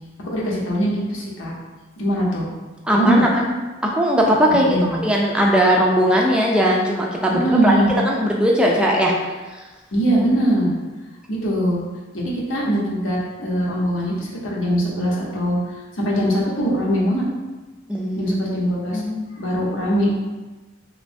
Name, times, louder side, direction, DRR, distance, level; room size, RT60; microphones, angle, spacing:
voice 1, 0.3-1.5 2.0-2.5 2.9-3.2 4.6-5.0 7.3-7.9 9.9-10.7 11.3-11.8 12.1-15.6 15.9-17.3 18.1-19.0 19.4-20.2, right 1 dB, 90° left, -5 dB, 0.9 m, -21 dB
voice 2, 2.9-3.5 3.8-7.7 8.0-9.1 17.9-18.3 18.9-19.2, equal, 5° right, -2 dB, 0.3 m, -19 dB
3.2 x 3.0 x 2.6 m, 1.2 s
head